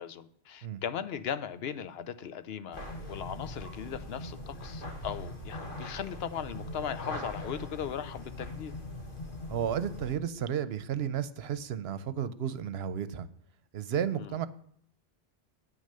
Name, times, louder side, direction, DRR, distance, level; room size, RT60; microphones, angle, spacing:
voice 1, 0.0-8.7 14.1-14.4, left 8 dB, 75° left, 0.9 m, -38 dB
sound 1, 2.7-10.2, left 1 dB, 55° left, 1.9 m, -41 dB
voice 2, 9.5-13.3 13.7-14.5, right 9 dB, 80° right, 0.9 m, -33 dB
9.3 x 6.4 x 6.7 m
omnidirectional pair, 1.0 m